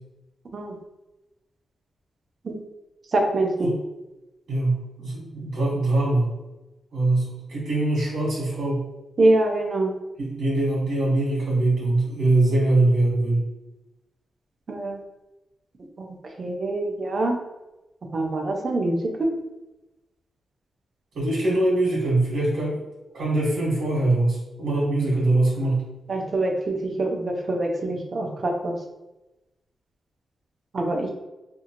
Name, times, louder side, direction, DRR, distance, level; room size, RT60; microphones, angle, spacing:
voice 1, 3.1-3.7 9.2-9.9 14.7-15.0 16.0-16.1 16.4-17.4 18.1-19.3 26.1-28.8 30.7-31.1, right 2 dB, 45° right, 2 dB, 0.5 m, -24 dB
voice 2, 4.5-6.3 6.9-8.9 10.2-13.5 21.1-22.8 23.1-25.8, right 2 dB, 90° right, -8 dB, 1.1 m, -22 dB
2.7 x 2.5 x 2.8 m, 1.0 s
cardioid pair, 105°, 0 cm